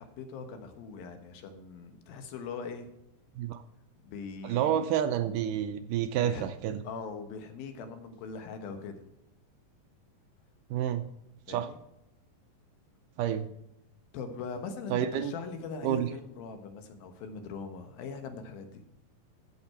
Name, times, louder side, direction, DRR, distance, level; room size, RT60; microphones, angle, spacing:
voice 1, 0.0-2.9 4.0-4.9 6.2-6.5 6.8-9.1 11.5-11.8 14.1-18.8, left 5 dB, 85° left, 7 dB, 3.1 m, -41 dB
voice 2, 4.4-6.8 10.7-11.0 11.5-11.7 13.2-13.5 14.9-15.3 15.8-16.1, right 10 dB, 80° right, 9 dB, 2.1 m, -29 dB
14.0 x 6.6 x 4.3 m, 0.85 s
omnidirectional pair, 4.1 m